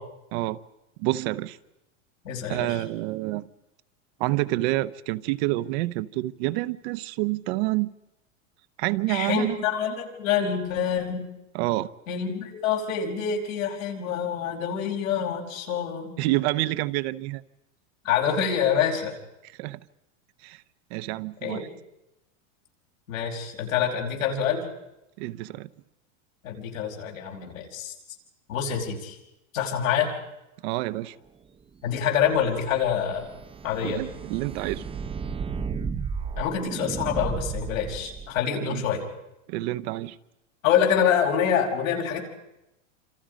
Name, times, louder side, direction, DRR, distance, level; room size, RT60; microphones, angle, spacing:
voice 1, 1.0-1.6 2.5-3.4 4.2-7.9 8.8-9.6 11.5-11.9 16.2-17.4 19.4-19.8 20.4-20.6 20.9-21.7 25.2-25.7 30.6-31.1 33.8-34.9 38.6-38.8 39.5-40.2, right 18 dB, 55° right, 0.9 m, -28 dB
voice 2, 2.2-2.8 9.1-11.2 12.1-16.1 18.0-19.1 21.4-21.6 23.1-24.7 26.4-27.9 28.5-29.2 29.5-30.1 31.8-33.3 33.6-34.0 36.4-39.0 40.6-42.2, left 8 dB, 85° left, 5.4 m, -26 dB
sound 1, 32.0-38.4, right 6 dB, 15° right, 0.7 m, -34 dB
27.5 x 27.5 x 5.1 m
supercardioid pair, 140°, 39 cm